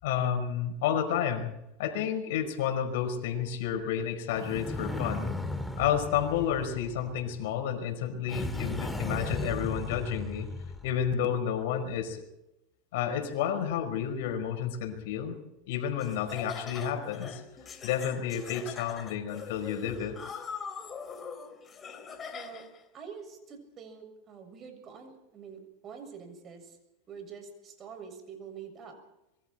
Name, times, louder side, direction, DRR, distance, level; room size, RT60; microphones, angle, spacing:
voice 1, 0.0-1.5 1.8-5.4 5.8-10.5 10.8-12.2 12.9-15.3 15.7-17.4 17.8-20.2, left 8 dB, 75° left, 5 dB, 5.1 m, -31 dB
sound 1, 4.3-7.4 8.3-11.0, left 1 dB, 5° left, 2.2 m, -36 dB
Laughter, 16.0-22.8, left 6 dB, 30° left, 3.2 m, -42 dB
voice 2, 22.3-22.7 22.9-26.8 27.1-29.0, right 6 dB, 35° right, 5 dB, 6.9 m, -46 dB
26.0 x 22.5 x 4.5 m, 0.89 s
supercardioid pair, 115°, 0 cm